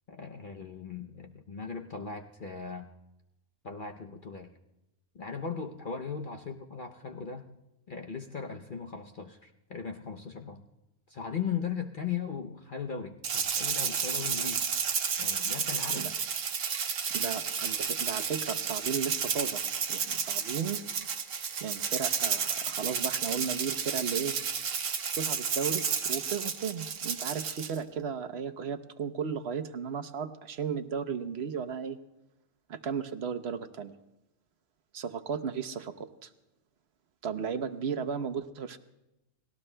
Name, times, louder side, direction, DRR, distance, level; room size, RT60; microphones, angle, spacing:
voice 1, 0.1-2.9 3.6-4.5 5.1-7.5 7.9-10.6 11.1-14.7 15.2-16.1, left 6 dB, 50° left, 3 dB, 0.8 m, -38 dB
Rattle (instrument), 13.2-27.8, right 6 dB, 85° right, 1.3 m, -32 dB
voice 2, 17.1-19.6 19.9-20.8 21.6-24.4 25.1-32.0 32.7-33.9 34.9-36.3 37.2-38.8, right 7 dB, 60° right, 9 dB, 1.0 m, -35 dB
30.0 x 20.0 x 2.2 m, 0.94 s
omnidirectional pair, 1.3 m